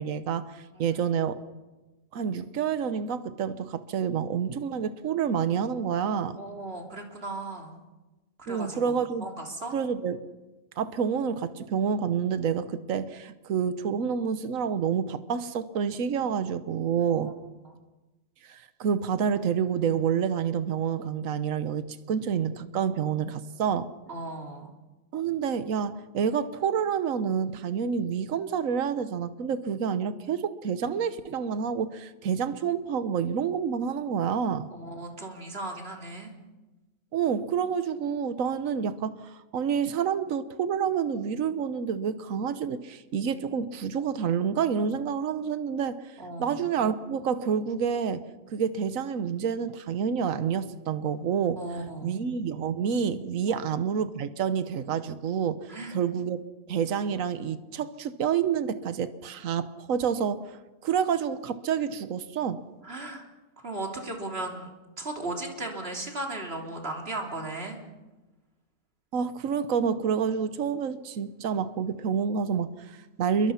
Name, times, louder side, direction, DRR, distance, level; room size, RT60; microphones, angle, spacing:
voice 1, 0.0-1.4 2.1-6.4 8.5-9.3 9.7-10.3 10.8-17.3 18.4-23.9 25.1-34.7 37.1-48.2 48.5-51.6 52.0-62.6 69.1-73.5, right 7 dB, 75° right, 12 dB, 1.4 m, -28 dB
voice 2, 6.4-7.8 8.5-9.8 17.2-17.3 17.6-17.8 24.1-24.7 34.7-36.3 46.2-46.6 51.6-52.1 53.5-53.6 55.7-55.9 62.8-63.2 63.6-64.7 65.0-67.8, right 2 dB, 45° right, 2 dB, 3.4 m, -36 dB
28.0 x 23.0 x 5.8 m, 1.1 s
omnidirectional pair, 1.4 m